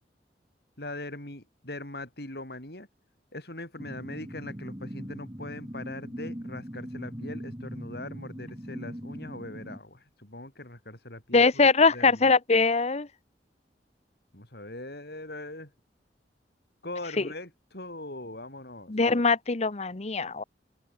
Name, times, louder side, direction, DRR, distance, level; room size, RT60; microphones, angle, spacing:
voice 1, 0.8-2.9 3.3-11.6 11.9-12.3 14.3-15.7 16.8-18.9, left 2 dB, 65° left, 7.0 m, -41 dB
sound 1, 3.8-9.8, equal, 20° right, 4.5 m, -40 dB
voice 2, 11.3-13.1 18.9-20.4, left 4 dB, 40° left, 0.9 m, -22 dB
head